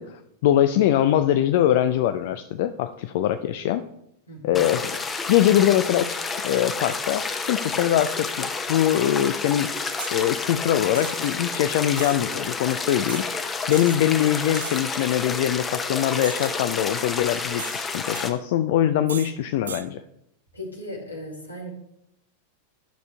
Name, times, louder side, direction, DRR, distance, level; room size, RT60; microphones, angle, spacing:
voice 1, 0.0-3.9 4.4-5.0 5.3-9.7 10.1-20.0, left 11 dB, 50° left, 10 dB, 0.3 m, -23 dB
voice 2, 4.3-4.6 20.5-21.7, equal, 80° left, -1 dB, 2.1 m, -37 dB
sound 1, 4.5-18.3, left 4 dB, 20° left, 0.7 m, -30 dB
sound 2, 10.0-10.2 10.9-11.3 12.0-12.2 13.1-13.3 13.7-14.0 14.5-14.9 16.2-16.6 17.6-18.3 19.1-19.3 19.7-19.9, right 7 dB, 65° right, 0.4 m, -37 dB
12.5 x 6.5 x 2.3 m, 0.79 s
figure-of-eight pair, 90°, 0 cm